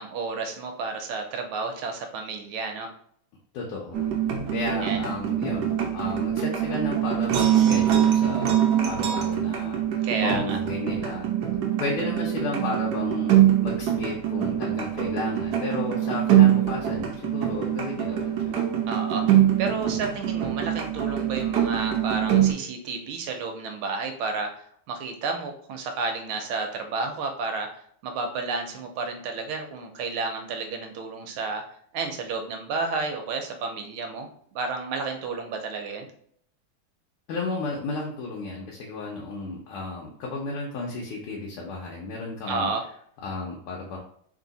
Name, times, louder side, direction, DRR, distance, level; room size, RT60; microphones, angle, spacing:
voice 1, 0.0-2.9 4.7-5.0 10.0-10.6 18.9-19.2 19.6-31.6 31.9-34.3 34.5-36.1 42.5-42.8, right 4 dB, 85° right, 4 dB, 1.5 m, -31 dB
voice 2, 3.5-4.1 4.5-11.3 11.8-13.3 13.6-18.7 19.2-19.3 37.3-42.7 43.2-44.0, left 3 dB, 85° left, -2 dB, 1.6 m, -33 dB
sound 1, 3.9-22.5, right 10 dB, 70° right, 1.0 m, -24 dB
3.7 x 2.7 x 3.9 m, 0.63 s
omnidirectional pair, 2.3 m